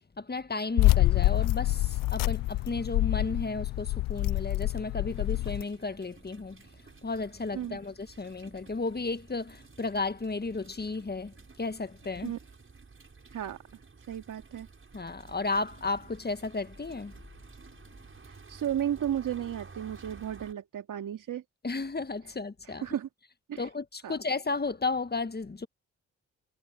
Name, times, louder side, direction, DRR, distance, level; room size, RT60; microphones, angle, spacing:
voice 1, 0.0-6.6 7.0-12.4 14.9-17.2 21.6-22.8 23.6-25.7, left 3 dB, 30° left, 1.6 m, -33 dB
sound 1, 0.8-5.6, left 18 dB, 70° left, 0.6 m, -26 dB
sound 2, 5.1-20.5, right 4 dB, 40° right, 7.0 m, -52 dB
voice 2, 14.1-14.7 18.5-21.4 22.8-23.1 23.5-23.7 24.0-24.2, right 10 dB, 65° right, 2.5 m, -33 dB
hypercardioid pair, 45°, 34 cm